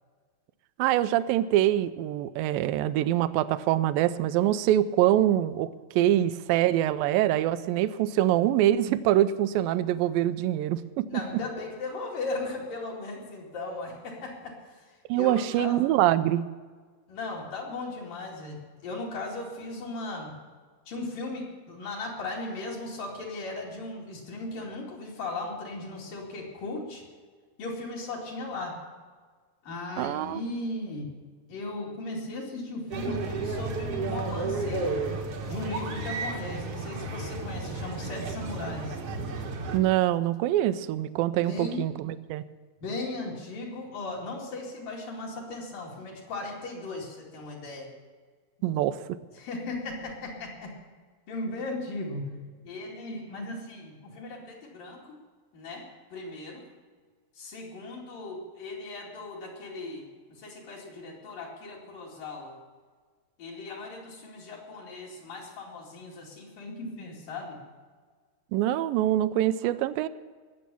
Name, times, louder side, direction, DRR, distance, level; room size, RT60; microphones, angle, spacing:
voice 1, 0.8-5.7 6.0-11.1 15.1-16.4 30.0-30.4 39.7-42.4 48.6-49.0 68.5-70.1, right 13 dB, 80° right, 14 dB, 2.1 m, -24 dB
voice 2, 11.1-15.7 17.1-20.4 20.9-27.0 27.6-28.8 29.6-31.1 31.5-35.0 35.5-39.0 41.4-41.8 42.8-47.9 49.3-50.7 51.3-52.2 52.6-55.2 55.5-56.7 57.4-62.6 63.4-67.6, left 2 dB, 60° left, -4 dB, 3.9 m, -37 dB
sound 1, 32.9-39.8, right 3 dB, 55° right, 1.7 m, -32 dB
20.0 x 7.6 x 6.9 m, 1.5 s
omnidirectional pair, 4.5 m